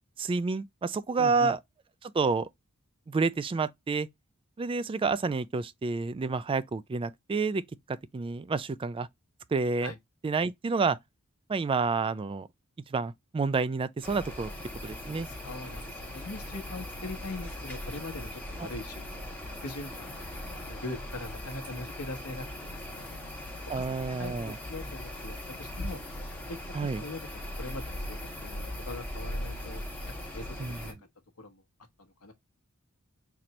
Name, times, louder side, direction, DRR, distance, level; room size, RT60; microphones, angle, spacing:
voice 1, 0.2-1.6 2.0-2.5 3.1-4.1 4.6-7.6 7.9-9.1 9.5-9.9 10.2-11.0 11.5-12.5 12.9-14.5 14.8-15.3 18.6-18.7 23.7-24.6 26.7-27.0 30.6-30.8, right 4 dB, 25° right, 0.3 m, -29 dB
voice 2, 1.2-1.5 9.8-10.0 15.4-19.2 19.6-23.1 23.6-26.0 26.5-27.3 27.6-29.8 30.3-30.9 31.4-31.6 32.0-32.3, left 2 dB, 85° left, 1.1 m, -42 dB
sound 1, 14.0-30.9, left 1 dB, 5° left, 1.3 m, -39 dB
4.2 x 2.8 x 3.1 m
head